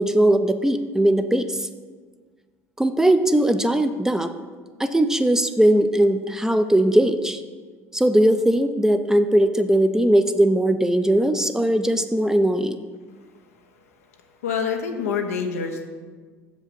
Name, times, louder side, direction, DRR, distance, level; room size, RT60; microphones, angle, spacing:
voice 1, 0.0-1.7 2.8-4.3 4.8-7.4 7.9-12.8, right 1 dB, 5° right, 8 dB, 0.7 m, -19 dB
voice 2, 14.4-15.8, left 6 dB, 80° left, 4 dB, 0.9 m, -26 dB
7.6 x 5.2 x 7.0 m, 1.5 s
hypercardioid pair, 65°, 8 cm